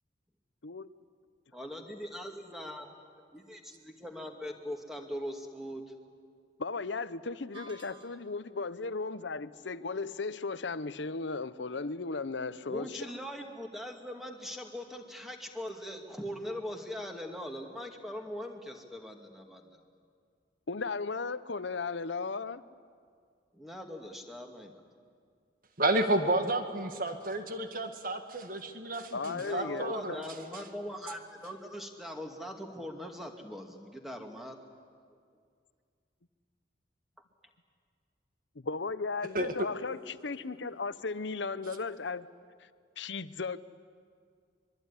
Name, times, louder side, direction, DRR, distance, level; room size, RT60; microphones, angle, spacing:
voice 1, 1.5-2.9 3.3-5.9 12.7-19.8 23.5-24.7 28.6-28.7 29.3-34.6, equal, ahead, 3 dB, 2.2 m, -41 dB
voice 2, 6.6-13.1 20.7-22.6 29.1-30.2 38.6-42.3 42.6-42.7 43.0-43.6, left 4 dB, 75° left, 15 dB, 0.8 m, -36 dB
sound 1, 7.5-8.5, right 4 dB, 25° right, 2.1 m, -53 dB
voice 3, 25.8-30.2 39.3-39.5, right 1 dB, 45° right, 7 dB, 1.9 m, -31 dB
24.0 x 23.5 x 9.8 m, 2.2 s
head